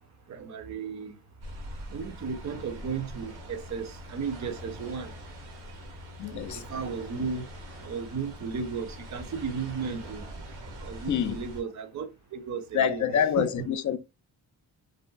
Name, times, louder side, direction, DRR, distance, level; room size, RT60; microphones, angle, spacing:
voice 1, 0.3-1.1 1.9-5.1 6.3-7.4 7.8-10.2 10.8-13.5, right 5 dB, 35° right, 0.6 m, -35 dB
sound 1, 1.4-11.6, equal, 80° right, 0.9 m, -43 dB
voice 2, 6.2-6.6 11.1-11.4 12.7-14.0, left 8 dB, 40° left, 0.4 m, -26 dB
2.8 x 2.4 x 2.2 m
supercardioid pair, 45°, 49 cm